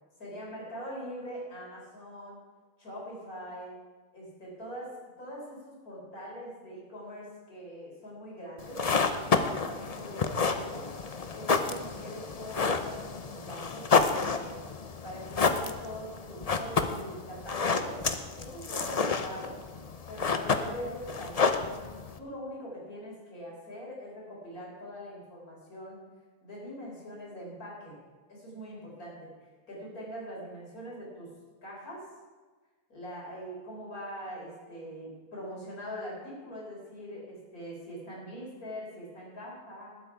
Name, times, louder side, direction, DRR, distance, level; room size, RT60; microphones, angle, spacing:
voice 1, 0.2-2.4 2.8-3.8 4.1-10.9 11.3-14.6 15.0-18.0 18.4-19.5 20.1-26.0 26.4-28.0 28.3-29.3 29.7-31.3 31.6-32.1 32.9-40.0, equal, 90° left, -4 dB, 4.6 m, -42 dB
sound 1, 8.6-22.2, left 4 dB, 35° left, 0.6 m, -30 dB
19.5 x 8.2 x 4.7 m, 1.4 s
omnidirectional pair, 1.5 m